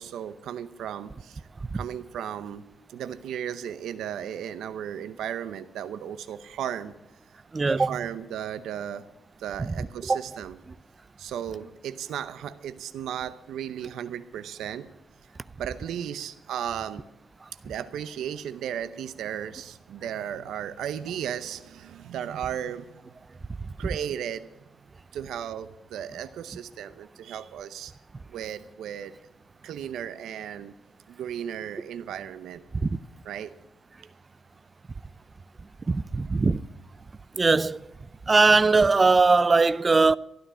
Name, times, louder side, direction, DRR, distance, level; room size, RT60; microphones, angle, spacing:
voice 1, 0.0-1.4 1.7-2.6 2.9-6.9 7.7-9.1 9.4-10.6 11.2-14.9 15.6-17.0 17.6-23.0 23.8-24.5 25.1-27.9 28.3-29.2 29.6-30.7 31.1-32.6 33.2-33.5, right 9 dB, 90° right, 0.7 m, -35 dB
voice 2, 7.5-7.9 10.1-10.2 32.8-32.9 35.9-36.6 37.4-37.8 38.3-40.2, right 3 dB, 25° right, 0.4 m, -20 dB
13.0 x 11.5 x 6.2 m
cardioid pair, 120°, 0 cm